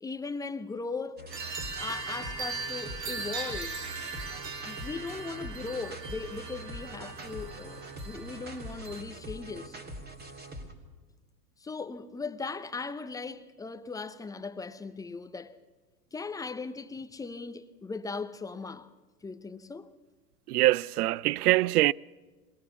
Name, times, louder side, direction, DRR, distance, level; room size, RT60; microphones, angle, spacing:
voice 1, 0.0-1.3 1.8-3.8 4.7-9.8 11.6-15.6 16.1-18.9 19.2-19.9, left 4 dB, 10° left, 0.6 m, -38 dB
sound 1, 1.2-10.7, right 1 dB, 20° right, 3.2 m, -43 dB
sound 2, 1.3-9.0, right 4 dB, 85° right, 2.1 m, -39 dB
voice 2, 20.5-21.9, right 16 dB, 70° right, 0.5 m, -23 dB
22.5 x 18.0 x 7.1 m
hypercardioid pair, 115°, 48 cm